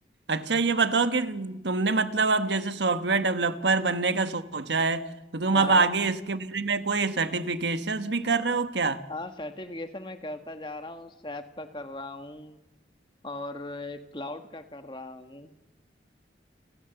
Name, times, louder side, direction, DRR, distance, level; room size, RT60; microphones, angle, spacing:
voice 1, 0.3-9.0, right 4 dB, 85° right, 1.3 m, -25 dB
voice 2, 5.5-5.9 9.1-12.6 13.2-15.5, left 2 dB, 25° left, 1.5 m, -38 dB
30.0 x 13.5 x 7.0 m
head